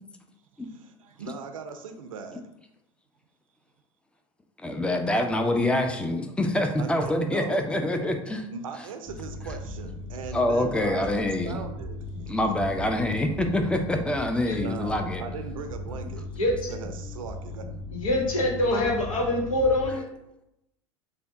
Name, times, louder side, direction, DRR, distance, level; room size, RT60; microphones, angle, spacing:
voice 1, 0.6-2.4 6.8-7.6 8.5-12.3 12.7-12.8 14.6-16.3 16.7-17.8, right 5 dB, 85° right, 6 dB, 0.5 m, -39 dB
voice 2, 4.6-8.5 10.3-11.6 12.3-15.2, left 1 dB, 5° left, 4 dB, 0.5 m, -26 dB
sound 1, 9.1-19.9, left 1 dB, 45° left, 1.2 m, -38 dB
voice 3, 16.3-16.7 17.9-20.0, left 1 dB, 85° left, -2 dB, 1.1 m, -25 dB
3.4 x 2.2 x 3.7 m, 0.84 s
hypercardioid pair, 85°, 17 cm